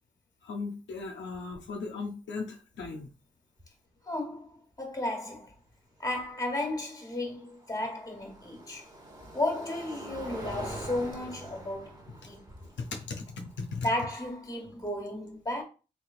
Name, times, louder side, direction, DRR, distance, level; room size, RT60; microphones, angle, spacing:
voice 1, 0.4-3.1 12.8-13.9, left 4 dB, 75° left, 0.6 m, -37 dB
sound 1, 0.9-1.0 1.3-1.8 3.6-3.7 6.7-14.8, right 1 dB, 20° right, 1.4 m, -45 dB
voice 2, 4.1-5.5 6.0-8.8 9.3-12.0 12.2-12.4 13.8-15.6, left 1 dB, 20° left, 1.3 m, -33 dB
3.4 x 3.0 x 2.4 m
supercardioid pair, 45°, 19 cm